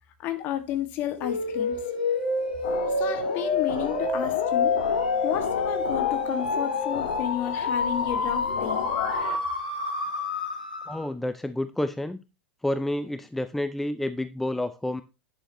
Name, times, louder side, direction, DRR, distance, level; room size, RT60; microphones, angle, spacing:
voice 1, 0.2-1.8 3.0-4.8 5.2-8.9, left 11 dB, 40° left, 1.9 m, -32 dB
sound 1, 1.2-11.1, left 4 dB, 75° left, 4.2 m, -28 dB
sound 2, 2.6-9.4, left 6 dB, 55° left, 1.5 m, -32 dB
voice 2, 10.9-12.2 12.6-15.0, left 1 dB, 5° left, 0.5 m, -29 dB
11.0 x 8.9 x 3.0 m
figure-of-eight pair, 85°, 5 cm